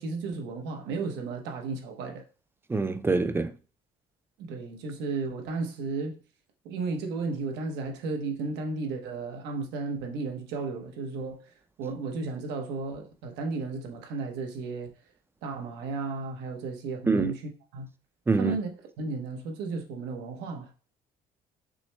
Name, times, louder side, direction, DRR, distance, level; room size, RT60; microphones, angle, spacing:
voice 1, 0.0-2.2 4.4-6.2 6.6-11.4 11.8-14.9 15.4-17.3 17.7-17.9 18.4-18.7 19.0-20.7, right 4 dB, 85° right, 0.9 m, -34 dB
voice 2, 2.7-3.5 17.1-17.3 18.3-18.6, right 3 dB, 15° right, 0.4 m, -25 dB
6.0 x 2.1 x 3.2 m
cardioid pair, 110°, 17 cm